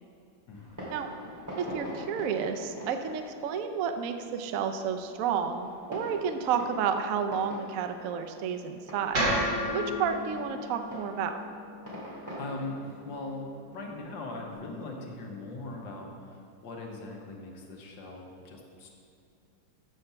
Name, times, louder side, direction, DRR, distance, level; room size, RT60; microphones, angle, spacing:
voice 1, 0.5-0.8 12.0-18.9, left 2 dB, 75° left, 0 dB, 1.8 m, -40 dB
Fireworks, 0.5-14.7, equal, 10° right, 1.9 m, -44 dB
voice 2, 1.6-9.3 9.7-11.4, right 7 dB, 80° right, 7 dB, 0.7 m, -31 dB
sound 1, 9.1-13.3, equal, 45° right, 2.0 m, -33 dB
7.5 x 5.8 x 6.7 m, 2.5 s
omnidirectional pair, 2.0 m